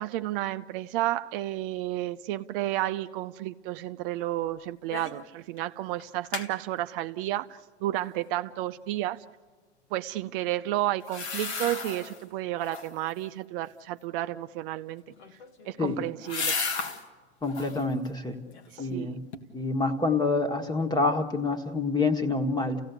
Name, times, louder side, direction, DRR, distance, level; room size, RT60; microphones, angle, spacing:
voice 1, 0.0-9.2 9.9-15.0 15.6-16.6 18.7-19.2, right 15 dB, 55° right, 0.7 m, -31 dB
sound 1, 4.9-5.2 5.6-5.7 6.0-6.5 11.0-12.2 12.6-13.1 15.1-17.0 17.4-17.9 18.3-19.0 19.3-19.4, left 5 dB, 90° left, 1.9 m, -34 dB
voice 2, 17.4-18.4 18.8-19.2 19.5-22.8, left 3 dB, 10° left, 1.4 m, -27 dB
29.0 x 16.5 x 8.1 m
hypercardioid pair, 110°, 33 cm